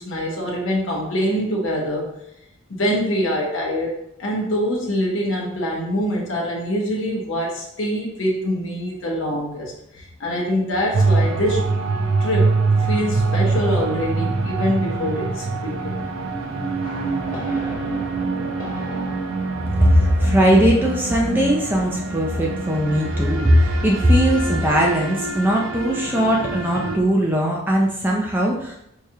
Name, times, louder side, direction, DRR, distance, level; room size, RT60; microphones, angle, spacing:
voice 1, 0.0-2.1 2.7-3.9 4.2-11.6 12.2-16.0, equal, 65° left, -2 dB, 0.7 m, -24 dB
sound 1, 10.9-27.0, right 3 dB, 75° right, 0.5 m, -24 dB
sound 2, 16.8-23.3 23.5-23.9, left 1 dB, 40° left, 0.9 m, -40 dB
voice 2, 19.8-28.8, equal, 10° right, -2 dB, 0.3 m, -19 dB
4.7 x 2.3 x 2.7 m, 0.78 s
head